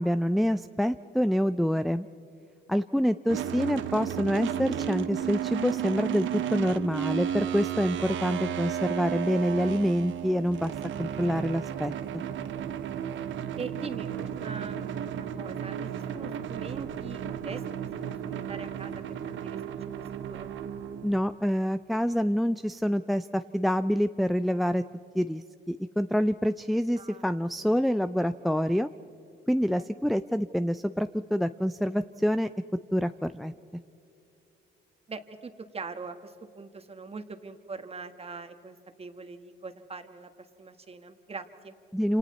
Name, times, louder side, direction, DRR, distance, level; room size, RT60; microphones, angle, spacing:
voice 1, 0.0-2.1 2.7-10.7 11.0-11.9 21.0-24.8 25.1-28.9 29.5-32.5 32.9-33.5 41.9-42.2, equal, ahead, 12 dB, 0.4 m, -27 dB
sound 1, 3.3-21.2, right 9 dB, 75° right, 1.0 m, -33 dB
sound 2, 9.3-11.4, left 4 dB, 85° left, 5.8 m, -58 dB
voice 2, 13.6-17.6 18.1-20.5 27.0-27.3 29.7-30.1 35.1-40.3 40.6-41.7, right 4 dB, 30° right, 8 dB, 1.6 m, -42 dB
28.0 x 27.5 x 4.2 m, 2.8 s
cardioid pair, 90°, 20 cm